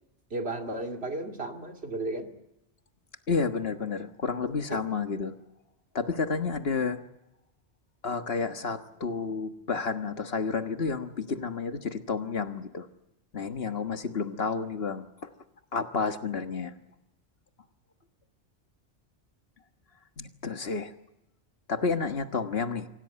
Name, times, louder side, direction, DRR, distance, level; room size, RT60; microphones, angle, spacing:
voice 1, 0.3-2.3 4.4-4.8, right 2 dB, 60° right, 4 dB, 2.7 m, -34 dB
voice 2, 3.3-5.3 6.0-7.0 8.0-12.9 13.3-15.3 15.7-16.7 20.2-20.9 21.7-22.9, left 5 dB, 60° left, 8 dB, 1.7 m, -30 dB
25.5 x 17.0 x 9.8 m, 0.91 s
omnidirectional pair, 1.2 m